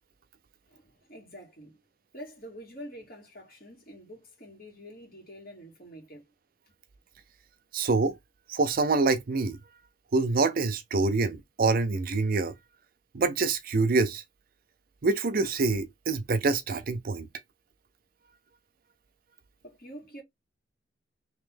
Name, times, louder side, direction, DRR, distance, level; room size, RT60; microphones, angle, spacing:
voice 1, 0.7-1.8 2.1-6.3 19.6-20.2, equal, 50° left, 2.1 m, -46 dB
voice 2, 7.7-8.2 8.5-9.6 10.1-12.5 13.1-14.2 15.0-17.3, right 3 dB, 45° right, 0.5 m, -26 dB
3.3 x 3.1 x 3.7 m
head